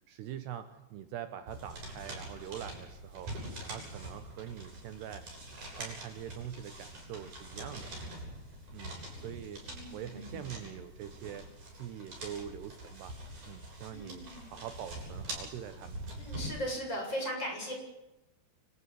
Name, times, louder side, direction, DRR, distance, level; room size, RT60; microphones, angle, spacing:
voice 1, 0.1-5.3 5.8-7.9 8.7-9.7 9.9-13.2 13.4-16.0, right 10 dB, 70° right, 10 dB, 3.0 m, -44 dB
sound 1, 1.5-16.5, right 1 dB, 40° right, 9.5 m, -44 dB
voice 2, 9.6-10.4 13.9-14.4 16.2-17.7, equal, 25° left, 0 dB, 8.2 m, -38 dB
28.0 x 14.5 x 10.0 m, 0.96 s
omnidirectional pair, 5.3 m